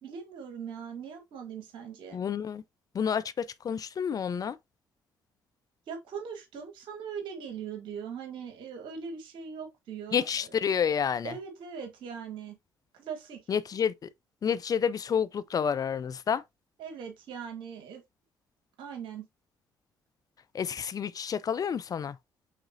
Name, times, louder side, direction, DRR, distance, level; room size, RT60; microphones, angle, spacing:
voice 1, 0.0-2.2 5.9-10.5 11.2-12.6 12.9-13.4 16.8-18.0 18.8-19.2, right 7 dB, 70° right, 1.5 m, -40 dB
voice 2, 2.1-2.6 2.9-4.6 10.1-11.3 13.5-14.1 14.4-16.4 20.5-22.2, left 7 dB, 45° left, 0.4 m, -29 dB
5.0 x 3.6 x 2.7 m
hypercardioid pair, 50°, 9 cm